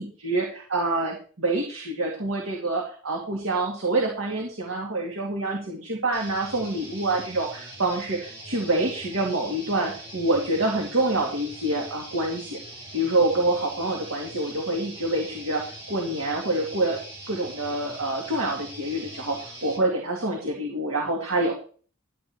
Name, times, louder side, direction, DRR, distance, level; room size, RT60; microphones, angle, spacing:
voice 1, 0.0-12.6 12.9-17.0 17.3-21.6, right 2 dB, 90° right, 0 dB, 2.5 m, -26 dB
sound 1, 6.1-19.8, right 1 dB, 30° right, 5.5 m, -42 dB
12.0 x 8.7 x 4.3 m, 0.41 s
head